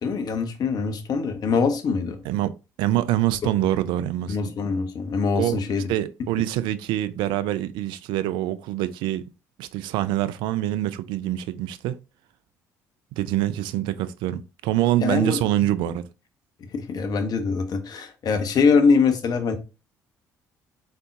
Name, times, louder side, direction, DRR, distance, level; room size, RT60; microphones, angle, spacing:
voice 1, 0.0-2.2 4.3-5.9 15.0-15.4 16.6-19.5, left 5 dB, 50° left, 1.0 m, -23 dB
voice 2, 2.8-4.5 5.4-5.6 5.9-9.2 9.6-12.0 13.2-16.0, right 13 dB, 70° right, 0.4 m, -25 dB
4.3 x 3.9 x 2.4 m
hypercardioid pair, 55°, 8 cm